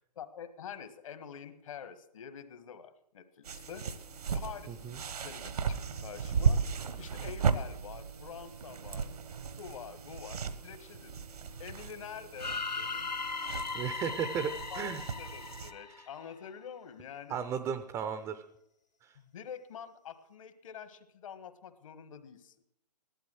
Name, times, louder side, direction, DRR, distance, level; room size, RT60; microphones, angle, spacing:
voice 1, 0.1-3.8 4.3-4.8 5.2-6.6 7.0-9.1 9.6-11.2 11.6-13.1 14.7-17.4 19.1-22.5, left 8 dB, 50° left, 11 dB, 1.5 m, -46 dB
sound 1, 3.4-15.7, right 6 dB, 65° right, 1.2 m, -35 dB
sound 2, 12.4-16.4, left 4 dB, 90° left, 1.1 m, -38 dB
voice 2, 13.7-15.0 17.3-18.4 19.0-19.1, right 7 dB, 15° right, 10 dB, 0.6 m, -35 dB
15.0 x 12.0 x 6.3 m, 0.78 s
figure-of-eight pair, 135°, 21 cm